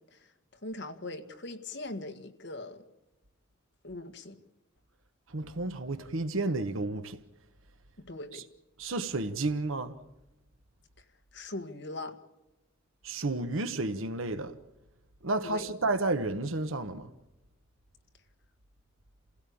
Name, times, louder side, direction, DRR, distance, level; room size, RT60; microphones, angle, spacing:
voice 1, 0.6-2.8 3.8-4.4 8.0-8.5 11.0-11.1 11.3-12.2 15.4-15.7, left 2 dB, 60° left, 1.8 m, -41 dB
voice 2, 5.3-7.2 8.3-8.4 8.8-9.9 13.0-14.5 15.2-17.1, right 2 dB, 80° right, 1.2 m, -31 dB
28.5 x 16.5 x 8.6 m
head